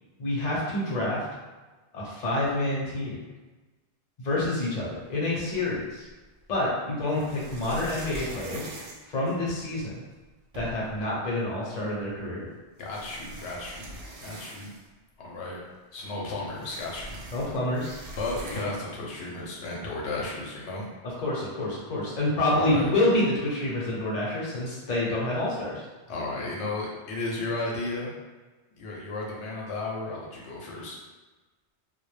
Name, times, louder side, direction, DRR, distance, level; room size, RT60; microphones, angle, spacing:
voice 1, 0.2-1.3 1.9-3.2 4.2-6.1 6.5-8.7 9.1-10.0 10.5-12.5 17.3-18.0 21.0-25.8, left 1 dB, 45° left, -6 dB, 0.7 m, -28 dB
sound 1, 5.5-6.3 7.1-9.8 10.2-10.3 10.5-11.0 12.1-12.2 12.8-15.0 15.3-15.4 15.7-18.9, right 1 dB, 70° right, 0.8 m, -43 dB
voice 2, 12.8-13.9 14.2-14.7 15.2-15.6 15.9-17.2 18.2-20.9 22.5-22.9 26.1-28.1 28.8-31.0, left 2 dB, 80° left, -3 dB, 0.9 m, -33 dB
2.1 x 2.1 x 3.1 m, 1.2 s
omnidirectional pair, 1.1 m